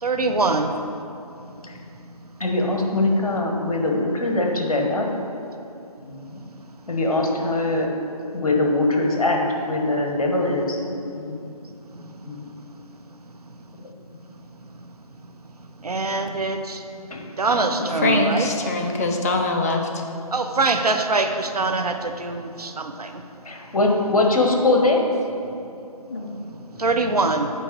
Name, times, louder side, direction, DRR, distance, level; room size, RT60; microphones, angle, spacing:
voice 1, 0.0-0.7 15.8-16.8 17.4-18.5 20.3-23.2 26.8-27.5, right 3 dB, 75° right, 6 dB, 0.7 m, -23 dB
voice 2, 1.4-1.7 2.4-5.4 6.0-6.4 6.9-7.9 8.3-11.5 12.2-12.3 17.1-17.3 18.9-19.1 23.4-25.0, left 2 dB, 65° left, 1 dB, 1.2 m, -22 dB
voice 3, 18.0-19.8 26.1-26.3, left 2 dB, 25° left, 2 dB, 0.4 m, -22 dB
8.1 x 4.5 x 4.5 m, 2.8 s
figure-of-eight pair, 145°, 20 cm